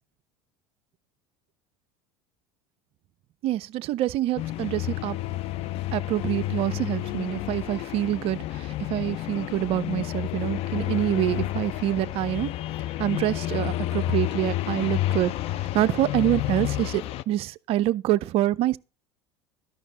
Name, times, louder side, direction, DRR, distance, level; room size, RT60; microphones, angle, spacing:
voice 1, 3.4-5.2 5.9-12.5 13.0-15.3 15.6-18.8, right 13 dB, 50° right, 0.4 m, -26 dB
sound 1, 4.4-17.2, left 14 dB, 50° left, 0.4 m, -30 dB
12.5 x 5.5 x 3.9 m
hypercardioid pair, 75°, 13 cm